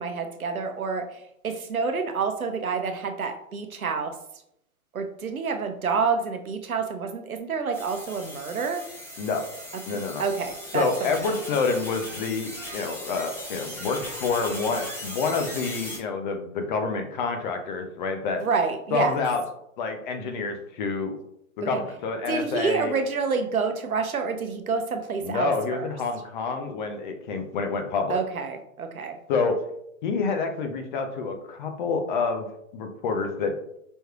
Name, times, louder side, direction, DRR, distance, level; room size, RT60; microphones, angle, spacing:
voice 1, 0.0-4.2 4.9-8.8 10.2-11.3 18.4-19.1 21.6-21.8 22.3-25.8 28.1-29.2, right 5 dB, 85° right, 7 dB, 0.7 m, -28 dB
sound 1, 7.7-16.0, left 1 dB, 5° left, 0.8 m, -38 dB
voice 2, 9.9-10.2 10.7-18.4 18.9-19.4 19.8-21.2 21.6-22.9 25.2-28.2 29.3-29.6 30.0-32.5 32.7-33.5, left 4 dB, 35° left, 5 dB, 0.6 m, -28 dB
5.2 x 3.1 x 2.3 m, 0.77 s
figure-of-eight pair, 115°, 41 cm